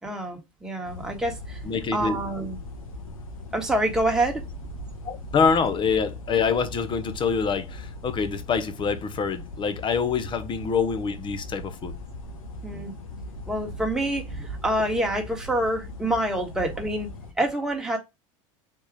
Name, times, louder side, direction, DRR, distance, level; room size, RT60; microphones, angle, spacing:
voice 1, 0.0-1.6 1.9-2.6 3.5-4.4 12.6-12.9 13.5-17.1 17.4-18.0, right 1 dB, 5° right, 1.3 m, -27 dB
sound 1, 0.8-17.3, left 1 dB, 90° left, 0.9 m, -39 dB
voice 2, 1.6-2.2 5.0-11.9, left 5 dB, 30° left, 0.7 m, -25 dB
3.7 x 2.7 x 4.7 m
hypercardioid pair, 105°, 17 cm